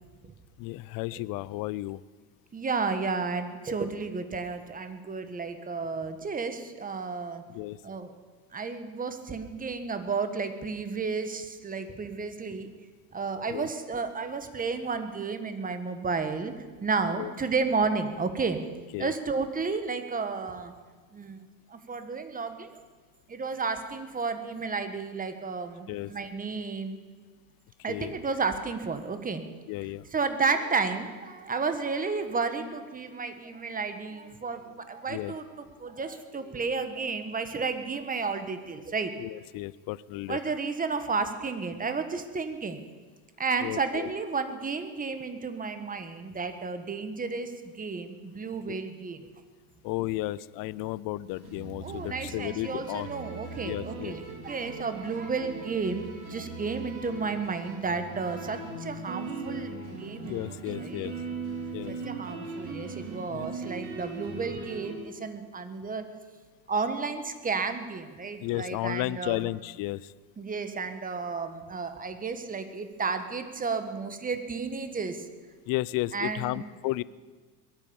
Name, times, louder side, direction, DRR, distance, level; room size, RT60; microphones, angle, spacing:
voice 1, 0.6-2.0 7.5-7.8 13.5-13.7 17.1-17.3 18.9-19.1 25.9-26.1 27.9-28.1 29.7-30.1 35.1-35.3 39.2-40.4 43.6-44.1 48.7-48.8 49.8-53.1 53.6-54.2 60.2-61.1 61.7-61.9 63.3-63.5 68.4-70.1 75.7-77.0, left 18 dB, 50° left, 20 dB, 0.5 m, -33 dB
voice 2, 2.5-7.4 7.8-8.1 8.5-12.7 13.1-16.5 16.8-18.6 19.0-20.7 21.1-22.7 23.3-27.0 27.8-29.4 30.1-39.1 40.3-42.8 43.4-49.2 51.8-61.1 61.9-66.1 66.7-69.5 70.4-75.3 76.1-76.6, right 4 dB, 20° right, 9 dB, 1.5 m, -32 dB
sound 1, 51.3-64.9, right 3 dB, 70° right, 3.9 m, -39 dB
21.5 x 9.0 x 7.1 m, 1.4 s
supercardioid pair, 115°, 46 cm